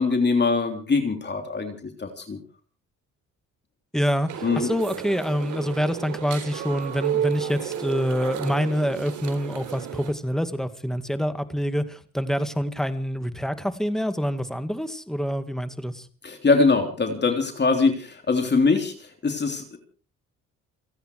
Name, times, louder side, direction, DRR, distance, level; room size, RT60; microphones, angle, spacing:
voice 1, 0.0-1.7 2.0-2.4 4.4-4.7 16.2-19.8, left 4 dB, 35° left, 5 dB, 3.4 m, -22 dB
voice 2, 3.9-16.1, equal, ahead, 10 dB, 2.2 m, -26 dB
sound 1, 4.3-10.1, right 9 dB, 75° right, 3.6 m, -32 dB
29.5 x 10.0 x 4.7 m, 0.40 s
cardioid pair, 90°, 30 cm